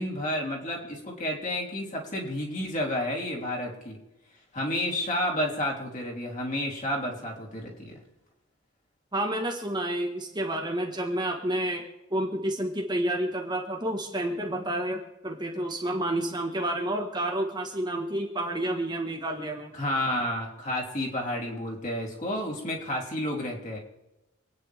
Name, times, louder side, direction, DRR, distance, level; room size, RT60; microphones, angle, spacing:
voice 1, 0.0-4.0 4.5-7.9 19.7-23.8, left 1 dB, 35° left, -2 dB, 3.7 m, -31 dB
voice 2, 9.1-11.8 12.1-19.7, right 1 dB, 20° right, 1 dB, 1.5 m, -30 dB
27.0 x 9.7 x 3.6 m, 0.96 s
head